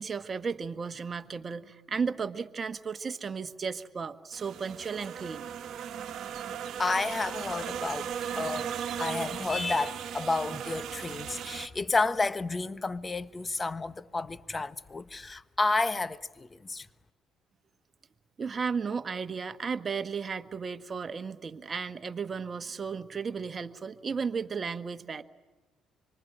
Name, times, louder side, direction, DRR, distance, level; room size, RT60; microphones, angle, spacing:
voice 1, 0.0-5.5 18.4-25.2, right 5 dB, 40° right, 1.5 m, -34 dB
sound 1, 4.3-11.7, right 8 dB, 60° right, 1.5 m, -37 dB
voice 2, 6.8-8.7 9.0-16.9, left 3 dB, 25° left, 1.2 m, -31 dB
25.5 x 24.5 x 8.8 m
hypercardioid pair, 60°, 0 cm